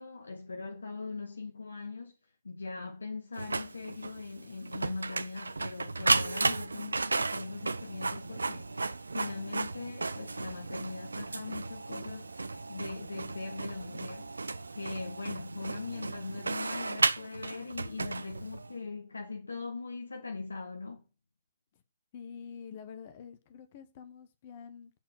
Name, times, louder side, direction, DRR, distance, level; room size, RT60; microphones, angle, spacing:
voice 1, 0.0-2.2 2.4-8.9 9.1-12.3 12.7-14.3 14.7-21.0, left 4 dB, 75° left, 0.9 m, -40 dB
Printer, 3.3-18.7, right 3 dB, 80° right, 0.4 m, -34 dB
voice 2, 22.1-24.9, left 7 dB, 45° left, 0.9 m, -47 dB
7.6 x 4.3 x 5.9 m
figure-of-eight pair, 120°, 0 cm